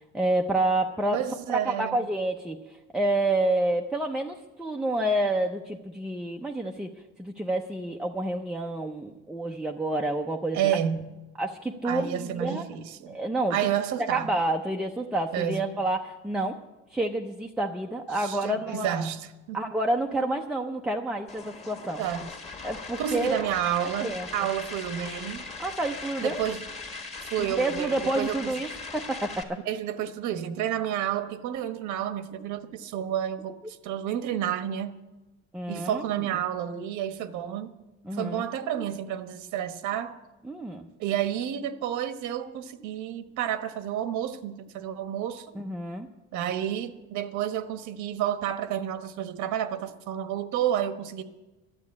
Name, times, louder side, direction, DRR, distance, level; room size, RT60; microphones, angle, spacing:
voice 1, 0.1-1.2 1.7-2.6 2.9-6.9 7.2-10.8 11.4-12.6 13.1-13.6 14.1-16.6 16.9-19.1 19.5-22.0 22.6-23.4 24.0-24.3 25.6-26.4 27.6-29.6 35.5-36.0 38.0-38.4 40.4-40.9 45.6-46.1, right 1 dB, 5° right, 2 dB, 0.5 m, -28 dB
voice 2, 1.1-2.0 10.5-11.2 11.8-13.2 13.5-14.3 15.3-15.8 18.1-19.6 22.0-22.3 23.0-25.5 26.2-26.6 27.3-28.5 29.7-35.0 35.7-37.7 38.1-40.2 41.0-45.5 46.3-51.2, right 10 dB, 85° right, 10 dB, 1.1 m, -30 dB
sound 1, 21.3-29.4, left 3 dB, 25° left, 1.5 m, -39 dB
12.0 x 8.3 x 9.6 m, 1.1 s
cardioid pair, 170°, 29 cm